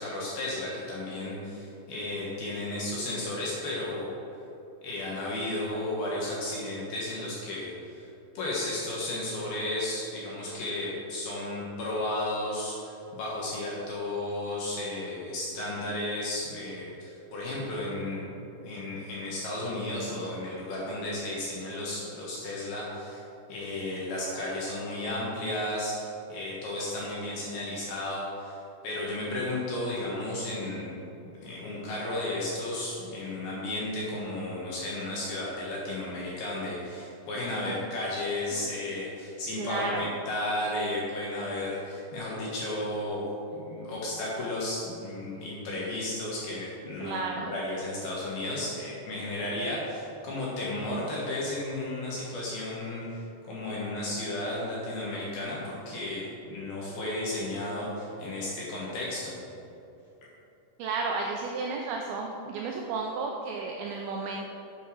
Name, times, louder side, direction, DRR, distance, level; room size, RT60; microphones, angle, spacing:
voice 1, 0.0-4.1 4.8-8.1 8.3-23.2 23.5-31.0 31.2-43.3 43.5-59.4, left 1 dB, 65° left, -5 dB, 2.6 m, -33 dB
voice 2, 39.6-40.1 47.0-47.5 60.8-64.5, right 4 dB, 85° right, 0 dB, 2.5 m, -33 dB
9.1 x 6.8 x 6.2 m, 2.9 s
omnidirectional pair, 5.9 m